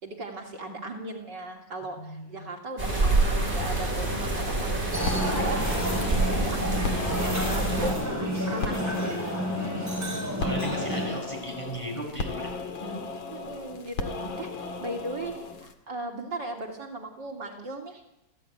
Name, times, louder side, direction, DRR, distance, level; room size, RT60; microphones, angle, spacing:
voice 1, 0.0-5.6 5.9-9.4 13.3-15.3 15.6-18.0, right 2 dB, 60° right, 2 dB, 3.4 m, -38 dB
voice 2, 1.8-2.5 9.6-9.7 10.4-12.5 12.8-13.0 14.2-14.3, equal, 15° left, 0 dB, 7.6 m, -36 dB
sound 1, 2.8-7.9, right 2 dB, 25° right, 6.7 m, -27 dB
sound 2, 4.8-15.7, left 4 dB, 80° left, 2.6 m, -36 dB
sound 3, 4.9-11.1, equal, 10° right, 5.8 m, -30 dB
29.5 x 15.5 x 9.5 m, 0.89 s
omnidirectional pair, 2.2 m